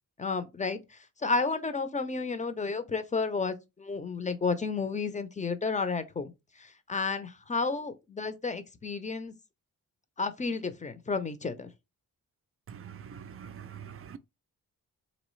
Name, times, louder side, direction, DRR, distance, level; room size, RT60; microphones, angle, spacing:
voice 1, 0.2-6.3 6.6-9.3 10.2-11.7, left 4 dB, 20° left, 0.6 m, -32 dB
voice 2, 12.7-14.2, right 8 dB, 40° right, 0.4 m, -44 dB
4.1 x 3.0 x 3.1 m
cardioid pair, 95°, 36 cm